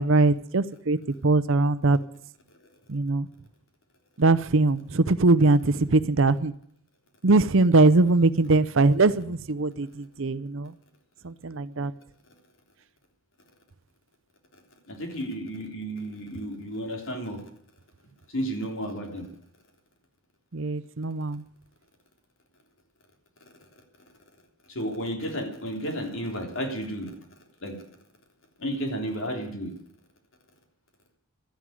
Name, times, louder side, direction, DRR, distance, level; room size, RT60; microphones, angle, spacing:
voice 1, 0.0-2.0 2.9-3.3 4.2-6.5 7.2-10.7 11.2-11.9 20.5-21.4, right 3 dB, 60° right, 15 dB, 0.7 m, -21 dB
voice 2, 14.9-17.4 18.3-19.3 24.7-27.1 27.6-27.8 28.6-29.7, equal, 60° left, 3 dB, 3.5 m, -32 dB
13.0 x 11.0 x 9.5 m, 0.64 s
head